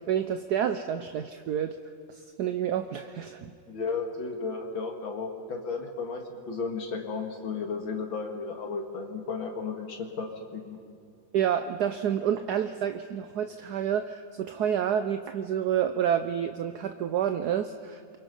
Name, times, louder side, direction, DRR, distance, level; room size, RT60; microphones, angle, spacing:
voice 1, 0.0-1.8 2.1-3.5 11.3-18.2, right 9 dB, 65° right, 9 dB, 1.2 m, -29 dB
voice 2, 3.7-10.8, left 4 dB, 90° left, 2 dB, 2.8 m, -34 dB
28.5 x 23.5 x 5.5 m, 2.2 s
omnidirectional pair, 2.1 m